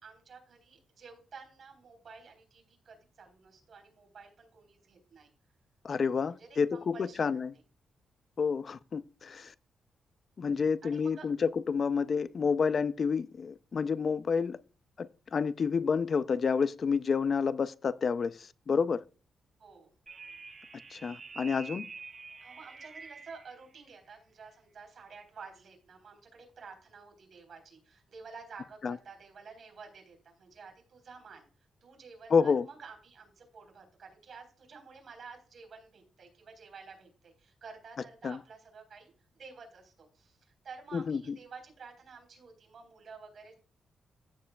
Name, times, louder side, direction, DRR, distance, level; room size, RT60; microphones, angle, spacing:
voice 1, 0.0-5.3 6.3-7.4 10.8-11.3 19.6-19.9 22.4-31.4 31.8-43.5, right 5 dB, 50° right, 3.8 m, -51 dB
voice 2, 5.8-7.5 8.4-9.5 10.4-14.6 15.0-19.0 20.9-21.9 28.8-29.0 32.3-32.7 38.2-38.4 40.9-41.4, left 5 dB, 40° left, 0.3 m, -29 dB
sound 1, 20.1-23.5, right 4 dB, 30° right, 0.9 m, -47 dB
15.0 x 7.4 x 2.2 m
wide cardioid pair, 155°, 0 cm